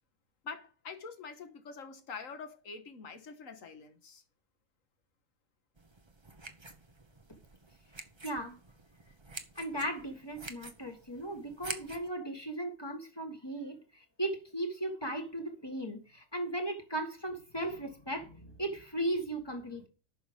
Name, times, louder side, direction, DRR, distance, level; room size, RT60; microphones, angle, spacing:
voice 1, 0.4-4.2, left 5 dB, 75° left, 1.8 m, -45 dB
sound 1, 5.8-12.1, right 3 dB, 20° right, 1.0 m, -48 dB
voice 2, 8.2-8.6 9.6-19.9, right 1 dB, 20° left, 1.8 m, -37 dB
10.0 x 6.5 x 5.2 m
omnidirectional pair, 1.4 m